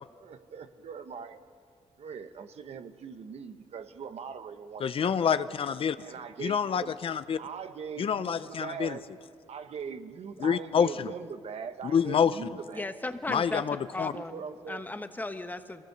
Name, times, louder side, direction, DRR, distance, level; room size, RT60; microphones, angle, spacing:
voice 1, 0.2-1.4 2.0-5.2 6.0-6.9 7.4-9.0 9.5-13.0 14.1-14.8, right 6 dB, 60° right, 9 dB, 1.2 m, -41 dB
voice 2, 4.8-6.0 6.4-7.4 8.0-9.0 10.4-11.1 11.9-12.4 13.3-14.1, left 7 dB, 50° left, 13 dB, 0.6 m, -27 dB
voice 3, 12.7-13.6 13.9-14.3 14.7-15.8, left 2 dB, 15° left, 8 dB, 1.1 m, -35 dB
25.0 x 18.0 x 6.8 m, 2.1 s
cardioid pair, 115°, 12 cm